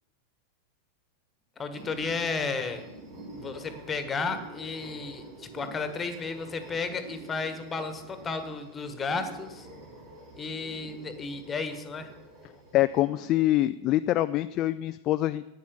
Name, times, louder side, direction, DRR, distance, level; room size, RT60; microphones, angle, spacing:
voice 1, 1.6-2.8 3.4-9.7 10.4-12.1, left 4 dB, 20° left, 9 dB, 1.4 m, -33 dB
sound 1, 1.7-13.0, right 1 dB, 55° right, 4.7 m, -47 dB
voice 2, 12.7-15.4, left 15 dB, 35° left, 12 dB, 0.3 m, -25 dB
10.5 x 9.3 x 7.0 m, 1.0 s
figure-of-eight pair, 90°, 0 cm